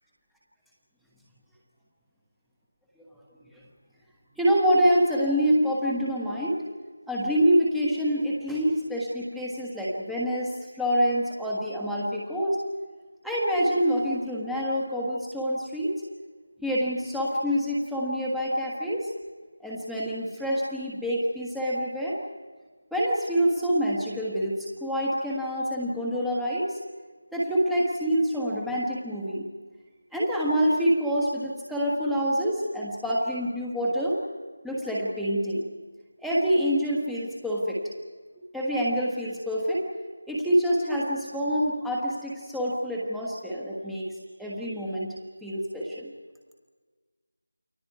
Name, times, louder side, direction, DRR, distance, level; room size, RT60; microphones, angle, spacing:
voice 1, 4.4-6.6 7.1-12.6 13.2-15.9 16.6-19.1 19.6-22.2 22.9-26.8 27.3-29.5 30.1-34.2 34.6-35.6 36.2-37.8 38.5-39.8 40.3-45.1 45.4-46.1, equal, ahead, -7 dB, 1.4 m, -26 dB
29.5 x 22.5 x 4.7 m, 1.4 s
figure-of-eight pair, 175°, 0 cm